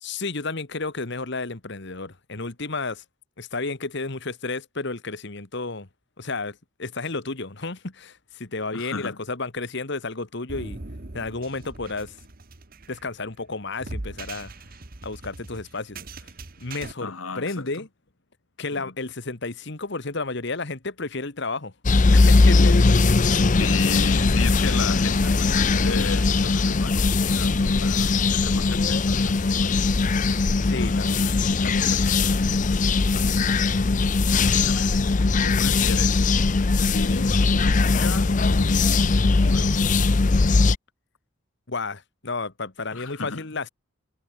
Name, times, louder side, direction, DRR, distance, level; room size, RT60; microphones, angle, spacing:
voice 1, 0.0-3.0 3.4-5.9 6.2-10.8 11.1-12.2 12.9-14.5 15.0-16.3 16.6-17.9 18.6-21.7 22.1-23.0 30.7-31.3 31.6-32.4 41.7-43.7, left 3 dB, 55° left, 1.6 m, -32 dB
voice 2, 8.7-9.2 17.0-17.8 18.7-18.9 23.2-29.8 32.4-32.7 33.2-33.6 34.3-34.9 35.4-36.3 36.8-39.9 42.9-43.5, left 4 dB, 85° left, 1.6 m, -35 dB
sound 1, 10.5-16.9, right 2 dB, 45° right, 1.4 m, -40 dB
sound 2, 21.8-40.8, left 3 dB, 40° left, 0.6 m, -20 dB
head